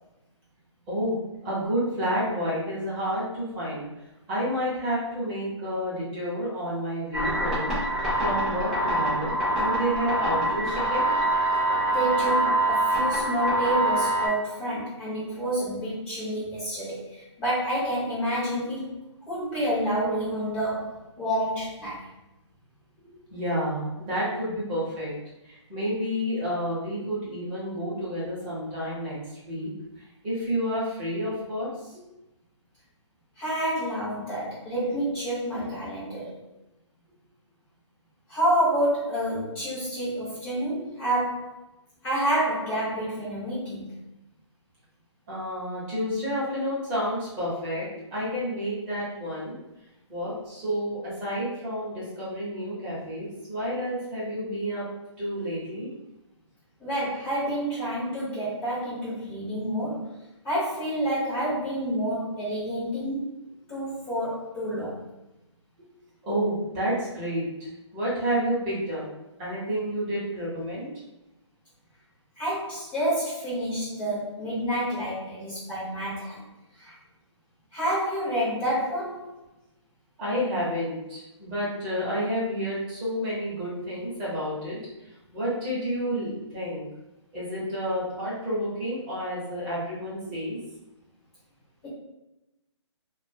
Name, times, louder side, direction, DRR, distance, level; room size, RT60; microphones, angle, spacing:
voice 1, 1.4-3.8 4.3-7.7 8.2-11.1 23.1-25.1 25.4-29.2 29.5-29.7 30.2-31.9 45.3-49.5 50.1-54.8 55.2-55.9 66.2-69.0 69.4-70.9 80.2-84.8 85.3-86.8 87.3-90.6, equal, 20° right, -8 dB, 0.9 m, -30 dB
sound 1, 7.1-14.3, right 1 dB, ahead, 0.3 m, -25 dB
voice 2, 11.9-18.9 19.3-22.0 33.4-36.4 38.3-41.6 42.0-43.9 56.8-60.1 60.4-63.3 63.7-65.0 72.4-76.4 76.7-76.9 77.7-79.3 91.8-91.9, right 1 dB, 15° left, -9 dB, 0.8 m, -28 dB
2.5 x 2.2 x 2.7 m, 0.95 s
hypercardioid pair, 155°, 16 cm